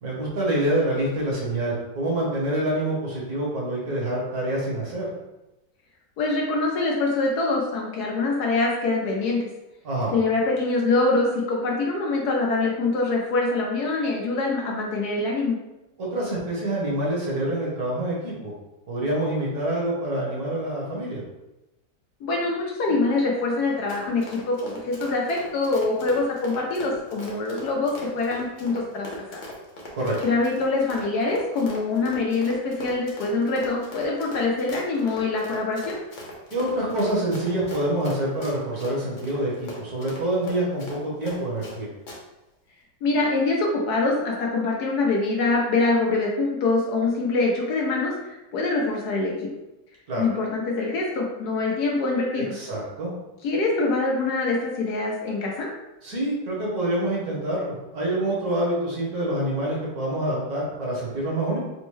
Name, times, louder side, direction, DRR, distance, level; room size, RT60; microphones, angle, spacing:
voice 1, 0.0-5.1 9.8-10.1 16.0-18.5 18.9-21.2 29.9-30.1 36.5-41.9 50.1-50.2 52.4-53.1 56.0-61.6, right 1 dB, 60° right, -4 dB, 1.4 m, -26 dB
voice 2, 6.2-9.4 10.1-15.6 22.2-29.4 30.2-36.0 43.0-49.3 50.2-52.5 53.4-55.7, left 3 dB, 70° left, -1 dB, 1.1 m, -24 dB
Run, 23.6-41.8 42.1-42.2, left 1 dB, 90° left, 0.4 m, -40 dB
4.3 x 2.1 x 3.1 m, 0.98 s
omnidirectional pair, 1.9 m